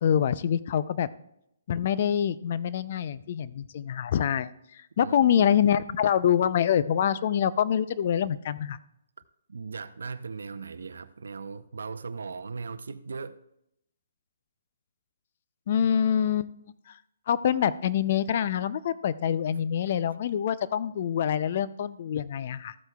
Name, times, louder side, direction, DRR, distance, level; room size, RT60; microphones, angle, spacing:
voice 1, 0.0-1.1 1.7-4.5 5.0-8.8 15.7-16.5 17.3-22.8, left 9 dB, 50° left, 0.5 m, -25 dB
voice 2, 9.5-13.4, right 4 dB, 80° right, 0.6 m, -38 dB
14.0 x 7.9 x 2.3 m
hypercardioid pair, 145°, 0 cm